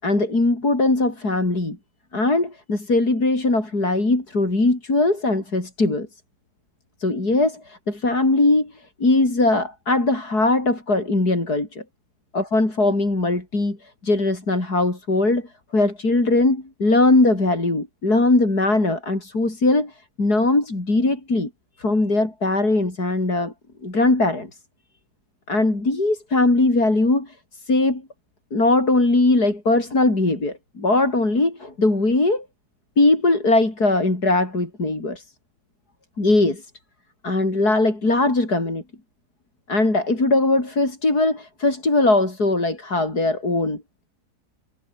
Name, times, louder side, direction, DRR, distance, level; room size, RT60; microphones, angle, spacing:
voice 1, 0.0-1.8 2.1-6.1 7.0-8.7 9.0-11.8 12.3-21.5 21.8-23.5 23.8-24.5 25.5-27.4 27.7-28.0 28.5-32.5 33.0-35.2 36.2-36.6 37.2-38.8 39.7-43.8, left 2 dB, 75° left, 6.5 m, -20 dB
omnidirectional pair, 1.7 m